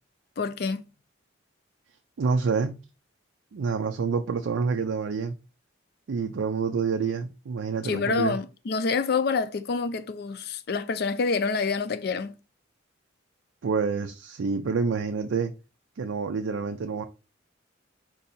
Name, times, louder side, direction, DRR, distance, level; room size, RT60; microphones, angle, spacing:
voice 1, 0.4-0.9 7.8-12.3, left 4 dB, 50° left, 0.4 m, -27 dB
voice 2, 2.2-2.8 3.5-5.3 6.1-8.3 13.6-15.5 16.0-17.0, right 5 dB, 75° right, 0.4 m, -27 dB
4.5 x 2.7 x 4.1 m
head